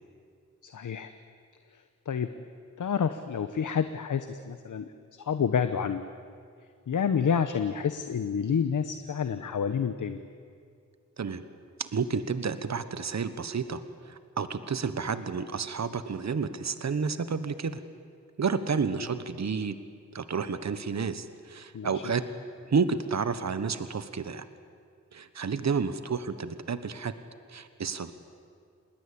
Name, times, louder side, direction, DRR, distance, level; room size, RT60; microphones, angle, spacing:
voice 1, 0.6-1.1 2.1-2.3 2.8-6.0 6.9-10.2 21.7-22.0, left 7 dB, 85° left, 10 dB, 1.0 m, -29 dB
voice 2, 11.8-17.8 18.4-19.8 20.1-22.2 22.7-24.5 25.1-27.1 27.5-28.1, right 5 dB, 65° right, 12 dB, 1.3 m, -30 dB
27.5 x 21.0 x 8.6 m, 2.2 s
wide cardioid pair, 70°, 30 cm